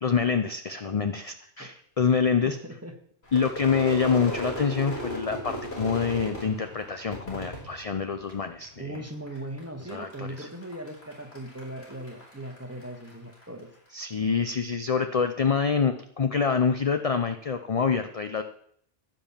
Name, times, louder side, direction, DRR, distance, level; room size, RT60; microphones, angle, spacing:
voice 1, 0.0-2.6 3.3-9.0 9.8-10.5 13.9-18.4, left 6 dB, 40° left, 8 dB, 0.6 m, -26 dB
voice 2, 2.4-2.9 8.8-13.7, right 1 dB, 15° right, 4 dB, 1.5 m, -39 dB
Crowd / Fireworks, 3.3-8.6 8.9-9.6 9.9-13.4, left 1 dB, 65° left, 4.2 m, -36 dB
14.5 x 5.5 x 7.3 m, 0.65 s
omnidirectional pair, 1.2 m